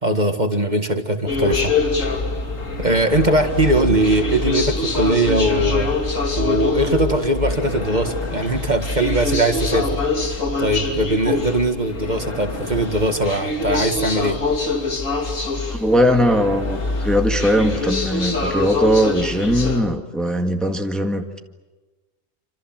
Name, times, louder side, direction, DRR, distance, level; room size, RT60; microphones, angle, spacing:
voice 1, 0.0-1.7 2.8-5.9 6.4-10.0 10.6-14.4, right 1 dB, 35° right, 6 dB, 2.0 m, -20 dB
sound 1, 1.3-19.8, left 3 dB, 75° left, 3.2 m, -24 dB
voice 2, 15.7-21.4, equal, ahead, 3 dB, 1.8 m, -20 dB
27.5 x 26.5 x 7.6 m, 1.2 s
omnidirectional pair, 1.4 m